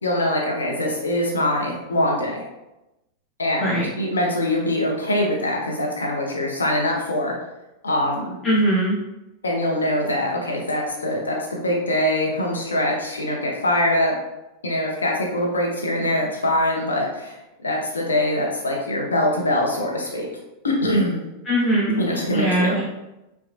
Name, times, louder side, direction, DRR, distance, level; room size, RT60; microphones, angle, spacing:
voice 1, 0.0-2.4 3.4-7.3 7.8-8.4 9.4-14.1 14.6-20.3 20.6-21.2 22.0-22.8, left 1 dB, 75° left, -1 dB, 0.6 m, -23 dB
voice 2, 8.4-9.0 21.5-22.0 22.3-22.8, right 1 dB, 20° left, -7 dB, 0.6 m, -20 dB
2.8 x 2.1 x 2.5 m, 0.95 s
figure-of-eight pair, 90°, 0 cm